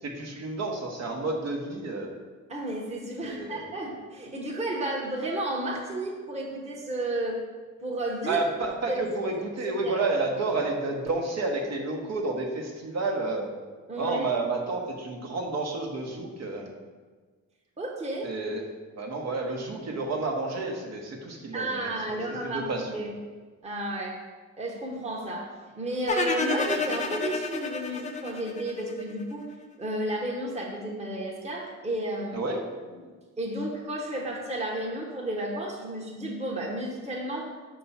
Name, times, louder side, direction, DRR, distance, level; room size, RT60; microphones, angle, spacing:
voice 1, 0.0-2.2 3.2-3.6 8.3-13.5 14.0-16.7 18.2-18.6 19.0-23.0 32.3-32.6, right 3 dB, 60° right, 1 dB, 1.1 m, -30 dB
voice 2, 2.5-7.4 7.8-8.4 8.9-9.1 9.8-10.0 13.9-14.3 17.8-18.3 21.5-23.1 23.6-24.2 24.6-25.5 25.8-29.5 29.8-32.4 32.9-33.1 33.4-37.5, right 1 dB, 20° right, -2 dB, 1.1 m, -32 dB
sound 1, 26.1-29.2, left 4 dB, 25° left, 0.5 m, -30 dB
5.9 x 3.0 x 5.6 m, 1.4 s
cardioid pair, 90°, 30 cm